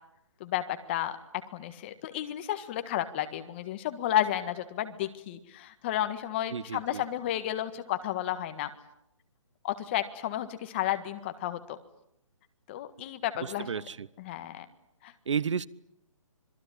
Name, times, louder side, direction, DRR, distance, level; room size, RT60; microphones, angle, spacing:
voice 1, 0.4-1.2 1.5-8.7 9.6-11.8 12.7-13.7 14.2-14.6 15.0-15.1, left 12 dB, 20° left, 1.6 m, -32 dB
voice 2, 6.5-7.0 13.4-14.1 15.3-15.7, right 7 dB, 65° right, 1.0 m, -32 dB
26.5 x 22.0 x 10.0 m
hypercardioid pair, 170°, 17 cm